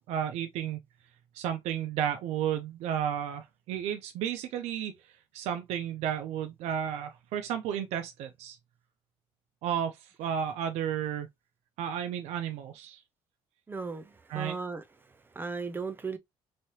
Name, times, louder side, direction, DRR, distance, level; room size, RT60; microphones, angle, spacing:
voice 1, 0.1-0.8 1.3-4.9 5.3-8.6 9.6-11.3 11.8-13.0 14.3-14.6, right 9 dB, 80° right, 0.5 m, -32 dB
voice 2, 13.7-16.2, right 4 dB, 20° right, 0.6 m, -37 dB
3.2 x 2.8 x 2.7 m
cardioid pair, 115°, 11 cm